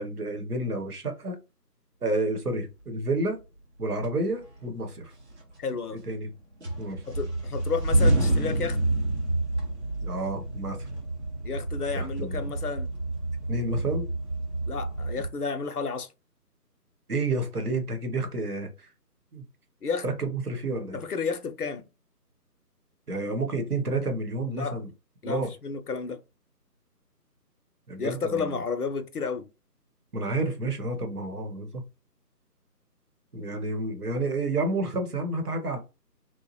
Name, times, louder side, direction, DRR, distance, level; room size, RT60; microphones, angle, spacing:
voice 1, 0.0-1.4 2.0-3.4 3.8-5.1 5.9-6.3 6.8-7.0 10.0-10.9 11.9-12.4 13.5-14.1 17.1-18.9 19.3-19.4 20.0-21.0 23.1-24.9 25.2-25.5 27.9-28.5 30.1-31.8 33.3-35.8, right 2 dB, 65° right, 1.0 m, -30 dB
sound 1, 3.4-3.5 4.0-4.8 5.1-6.3 6.6-15.3, right 2 dB, 45° right, 0.6 m, -28 dB
voice 2, 5.6-6.0 7.1-8.8 11.4-12.9 14.7-16.1 19.8-20.0 20.9-21.9 24.5-24.8 25.2-26.2 28.0-29.5, left 5 dB, 65° left, 0.6 m, -31 dB
2.9 x 2.1 x 2.8 m
figure-of-eight pair, 155°, 49 cm